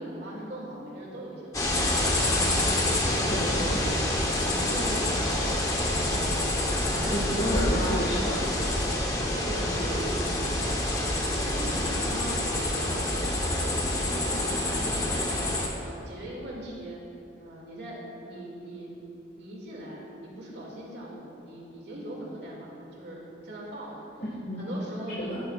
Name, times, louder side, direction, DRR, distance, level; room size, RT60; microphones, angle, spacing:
voice 1, 0.0-2.1 2.4-3.8 4.1-7.4 9.4-17.0 17.4-18.9 19.4-24.1 24.6-25.4, right 1 dB, 60° right, -4 dB, 2.2 m, -40 dB
sound 1, 1.5-15.7, left 1 dB, 20° left, 0.9 m, -27 dB
voice 2, 3.3-3.8 6.9-8.4 24.2-24.8 25.2-25.4, equal, 50° left, -7 dB, 1.6 m, -30 dB
15.0 x 9.2 x 2.4 m, 2.7 s
head